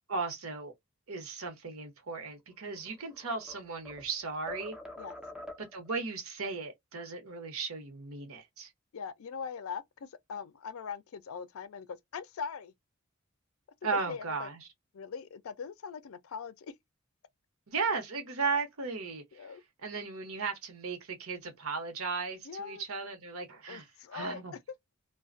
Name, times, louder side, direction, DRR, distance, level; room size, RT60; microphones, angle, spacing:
voice 1, 0.1-0.7 1.1-4.8 5.6-8.7 13.8-14.7 17.7-19.2 19.8-23.9 24.1-24.5, right 4 dB, 85° right, 0.8 m, -36 dB
sound 1, 2.7-4.1 4.5-5.9, left 1 dB, 5° right, 0.3 m, -46 dB
voice 2, 8.9-12.7 13.9-14.5 14.9-16.7 19.3-19.6 22.4-22.8 23.7-24.4, left 6 dB, 75° left, 0.4 m, -41 dB
2.4 x 2.1 x 2.4 m
head